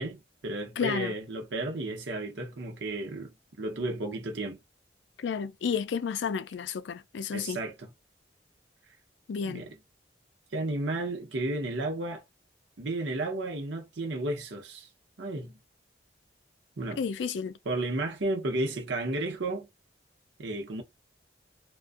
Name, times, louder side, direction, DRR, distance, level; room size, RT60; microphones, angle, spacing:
voice 1, 0.0-4.6 7.3-7.9 9.4-9.8 10.5-12.2 12.8-14.9 15.2-15.6 16.8-17.0 17.6-19.7 20.4-20.8, right 2 dB, 90° right, 0.8 m, -33 dB
voice 2, 0.8-1.1 5.2-7.6 9.3-9.7 17.0-17.5, left 6 dB, 80° left, 0.4 m, -31 dB
2.4 x 2.2 x 2.5 m
head